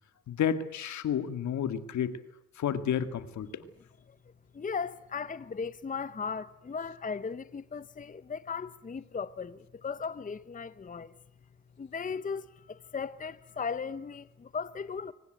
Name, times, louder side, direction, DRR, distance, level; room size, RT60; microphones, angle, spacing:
voice 1, 0.3-2.2 2.6-3.6, left 8 dB, 65° left, 2.1 m, -31 dB
voice 2, 4.5-11.1 11.8-15.1, left 5 dB, 25° left, 0.9 m, -37 dB
23.5 x 19.5 x 9.3 m
cardioid pair, 90°, 30 cm